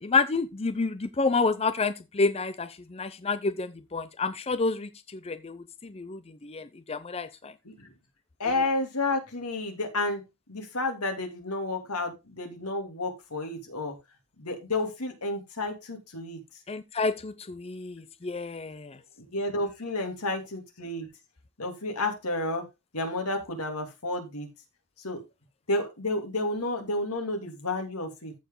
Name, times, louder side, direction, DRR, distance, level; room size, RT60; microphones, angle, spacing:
voice 1, 0.0-7.5 16.7-19.0, left 4 dB, 25° left, 0.5 m, -29 dB
voice 2, 8.4-10.2 10.5-13.9 14.4-16.4 19.2-21.1 21.6-22.7 22.9-24.5 25.0-25.2 25.7-28.3, left 2 dB, 90° left, 2.9 m, -31 dB
14.5 x 4.9 x 3.8 m
head